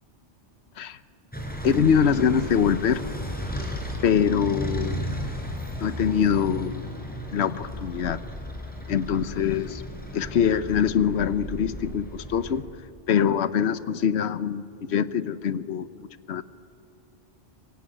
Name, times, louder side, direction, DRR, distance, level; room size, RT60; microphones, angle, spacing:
sound 1, 1.3-12.6, equal, 5° left, 4.5 m, -34 dB
voice 1, 1.6-3.0 4.0-5.1 5.8-6.9 7.3-8.2 8.9-9.8 10.1-12.7 13.1-16.4, left 7 dB, 65° left, 14 dB, 1.1 m, -24 dB
25.0 x 24.0 x 9.9 m, 2.5 s
omnidirectional pair, 1.2 m